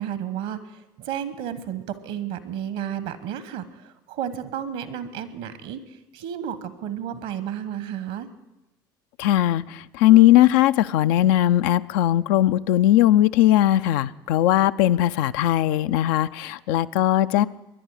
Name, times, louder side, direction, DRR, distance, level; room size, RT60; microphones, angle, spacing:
voice 1, 0.0-8.3, right 9 dB, 65° right, 13 dB, 1.2 m, -32 dB
voice 2, 9.2-17.5, left 13 dB, 65° left, 12 dB, 0.4 m, -19 dB
20.5 x 11.0 x 4.9 m, 0.98 s
hypercardioid pair, 65°, 12 cm